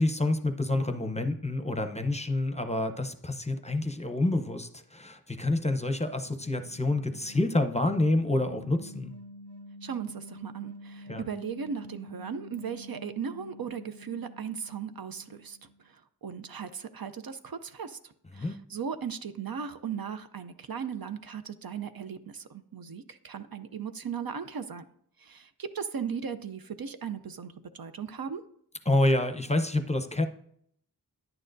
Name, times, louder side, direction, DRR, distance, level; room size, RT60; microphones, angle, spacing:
voice 1, 0.0-9.1 11.1-11.2 18.3-18.5 28.9-30.3, left 2 dB, 15° left, 7 dB, 0.7 m, -28 dB
sound 1, 5.7-15.8, left 1 dB, 80° right, 3.2 m, -48 dB
voice 2, 9.8-15.6 15.8-24.8 25.2-28.4, right 7 dB, 60° right, 10 dB, 0.6 m, -37 dB
10.5 x 8.9 x 2.6 m, 0.69 s
wide cardioid pair, 55°, 41 cm